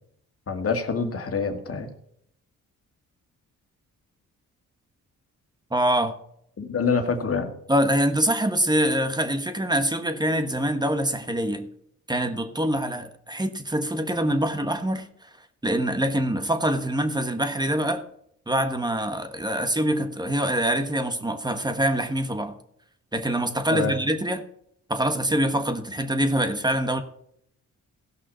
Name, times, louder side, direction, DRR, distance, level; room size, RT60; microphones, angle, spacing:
voice 1, 0.5-1.9 6.6-7.5 23.7-23.9, left 5 dB, 45° left, 5 dB, 2.1 m, -26 dB
voice 2, 5.7-6.1 7.7-11.7 12.1-15.3 15.6-18.0 18.5-22.5 23.1-24.4 24.9-27.0, right 1 dB, 15° right, 8 dB, 1.4 m, -24 dB
16.5 x 5.9 x 5.6 m, 0.70 s
cardioid pair, 85°, 31 cm